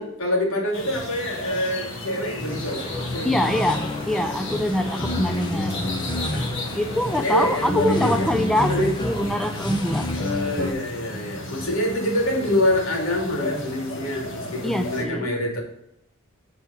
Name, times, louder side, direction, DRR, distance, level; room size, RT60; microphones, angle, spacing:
voice 1, 0.0-3.5 6.3-6.5 7.2-8.3 8.6-8.9 9.5-9.6 10.1-15.6, left 1 dB, 75° left, -1 dB, 2.9 m, -26 dB
sound 1, 0.7-15.0, left 2 dB, 60° left, 1.9 m, -35 dB
sound 2, 1.3-8.7, equal, 20° right, 1.9 m, -42 dB
sound 3, 2.4-10.7, left 2 dB, 20° left, 1.0 m, -29 dB
voice 2, 3.2-5.9 6.8-10.2 14.6-15.3, left 1 dB, ahead, 5 dB, 0.5 m, -24 dB
8.7 x 4.5 x 6.9 m, 0.81 s
head